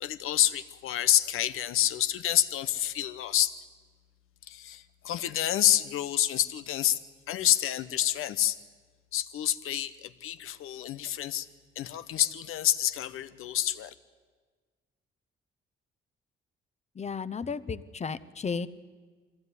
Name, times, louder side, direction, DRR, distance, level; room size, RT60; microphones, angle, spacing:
voice 1, 0.0-3.5 4.5-7.0 7.3-8.6 9.1-11.5 11.8-13.9, left 12 dB, 90° left, 1.0 m, -28 dB
voice 2, 16.9-18.7, left 5 dB, 30° left, 0.9 m, -34 dB
22.5 x 16.0 x 9.7 m
cardioid pair, 105°, 21 cm